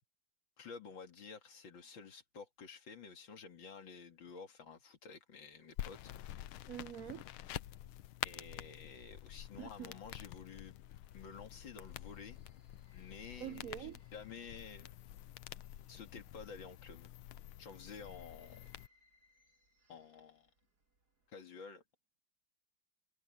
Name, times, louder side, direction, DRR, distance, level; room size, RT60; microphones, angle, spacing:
voice 1, 0.6-6.1 8.2-10.8 11.1-12.4 12.9-14.9 15.9-17.1 17.6-18.7 19.9-20.5 21.3-21.8, left 5 dB, 70° left, 2.8 m, -51 dB
sound 1, 5.8-18.9, left 13 dB, 85° left, 1.6 m, -48 dB
sound 2, 6.4-21.3, left 1 dB, 50° right, 3.5 m, -75 dB
voice 2, 6.7-7.2 9.6-9.9 13.4-14.0, right 11 dB, 90° right, 0.7 m, -45 dB
omnidirectional pair, 2.2 m